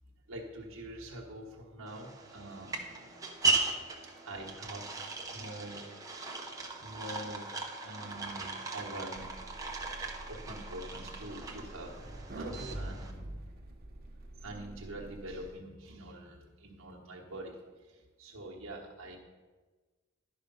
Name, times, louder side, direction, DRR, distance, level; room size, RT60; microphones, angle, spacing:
voice 1, 0.3-3.2 4.0-7.5 7.8-9.2 10.0-11.9 12.4-13.5 14.4-19.2, right 1 dB, 70° right, -2 dB, 1.2 m, -45 dB
sound 1, 1.9-13.1, right 3 dB, 15° right, 0.9 m, -37 dB
sound 2, 9.2-15.5, right 1 dB, 50° right, 1.0 m, -45 dB
11.5 x 5.0 x 5.4 m, 1.4 s
head